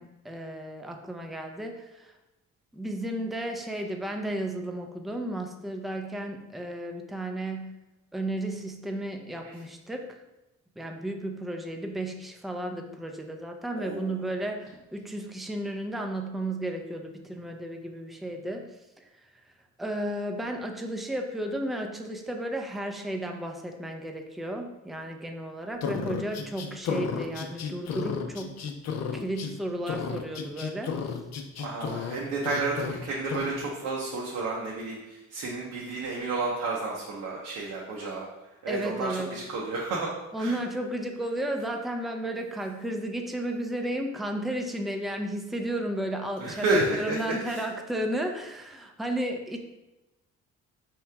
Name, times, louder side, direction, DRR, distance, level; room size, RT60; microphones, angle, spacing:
voice 1, 0.0-2.1 2.7-7.8 8.1-10.1 10.8-18.6 19.0-19.1 19.8-28.6 29.1-30.9 38.7-39.3 40.3-49.6, right 1 dB, ahead, 3 dB, 0.4 m, -33 dB
voice 2, 13.7-14.2 31.6-38.3 38.6-40.1 40.4-40.6 46.4-47.2 47.4-47.6, right 3 dB, 85° right, -3 dB, 0.8 m, -31 dB
sound 1, 25.8-29.5 29.9-32.2 32.4-33.0 33.3-33.5, left 6 dB, 60° left, 0.6 m, -33 dB
4.6 x 3.0 x 3.3 m, 1.0 s
cardioid pair, 90°, 30 cm